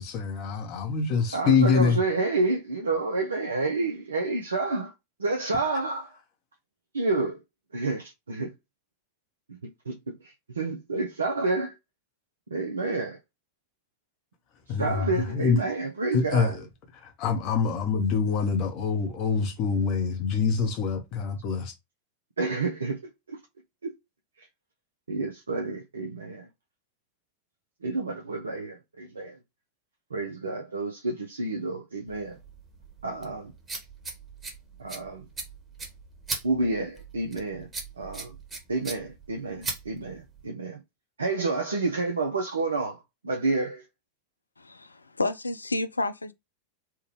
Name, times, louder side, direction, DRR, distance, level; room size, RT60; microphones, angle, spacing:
voice 1, 0.0-2.0 14.7-15.6 16.1-16.7 16.9-21.7, left 5 dB, 40° left, 0.8 m, -25 dB
voice 2, 1.3-4.9 5.2-6.2 6.9-7.4 7.7-8.5 9.9-11.7 12.5-13.2 14.8-16.5 22.4-23.0 23.3-23.4 23.8-23.9 25.1-26.5 27.8-29.4 30.1-32.4 33.0-33.5 34.8-35.3 36.4-37.7 38.0-38.3 38.7-40.8 41.2-43.8, right 3 dB, 75° right, 0.5 m, -29 dB
sound 1, 32.1-40.5, right 3 dB, 20° right, 1.2 m, -39 dB
voice 3, 44.6-46.3, left 2 dB, 80° left, 0.3 m, -30 dB
3.4 x 2.2 x 3.1 m
figure-of-eight pair, 90°, 0 cm